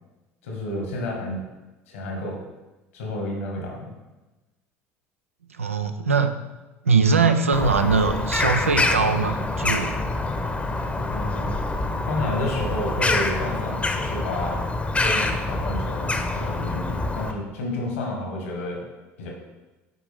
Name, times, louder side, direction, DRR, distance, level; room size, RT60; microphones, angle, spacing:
voice 1, 0.4-1.4 1.9-2.4 2.9-3.9 11.1-11.6 12.1-14.7 15.0-18.8 19.2-19.3, left 1 dB, 75° left, -1 dB, 1.7 m, -30 dB
voice 2, 5.5-6.3 6.8-9.9, right 5 dB, 90° right, 8 dB, 0.5 m, -21 dB
Bird vocalization bird call bird song, 7.5-17.3, left 2 dB, 15° left, 0.8 m, -26 dB
8.4 x 5.0 x 3.5 m, 1.1 s
figure-of-eight pair, 65°, 7 cm